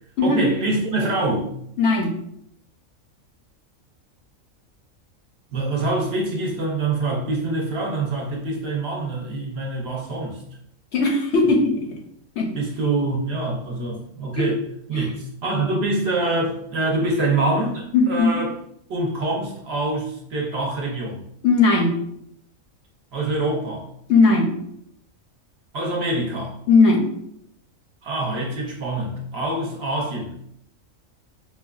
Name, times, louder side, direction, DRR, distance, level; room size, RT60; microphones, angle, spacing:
voice 1, 0.2-1.5 5.5-10.4 12.5-14.6 14.9-18.5 18.9-21.2 23.1-23.9 25.7-26.6 28.0-30.4, right 2 dB, 60° right, -1 dB, 0.8 m, -25 dB
voice 2, 1.8-2.1 10.9-11.9 12.4-12.5 14.4-14.5 14.9-15.1 17.9-18.3 21.4-22.0 24.1-24.6 26.7-27.1, left 3 dB, 65° left, 1 dB, 0.8 m, -18 dB
4.7 x 2.2 x 2.3 m, 0.72 s
omnidirectional pair, 1.4 m